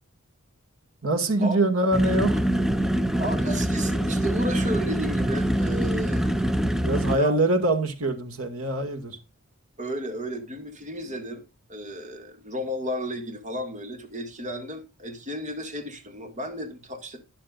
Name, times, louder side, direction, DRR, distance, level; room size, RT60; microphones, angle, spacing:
voice 1, 1.0-2.5 6.8-9.2, right 2 dB, 75° right, 2.1 m, -24 dB
sound 1, 1.9-7.2, right 1 dB, ahead, 0.5 m, -24 dB
voice 2, 3.2-6.6 7.1-7.4 9.8-11.4 11.7-17.2, equal, 35° right, 2.1 m, -33 dB
12.5 x 10.0 x 2.5 m
head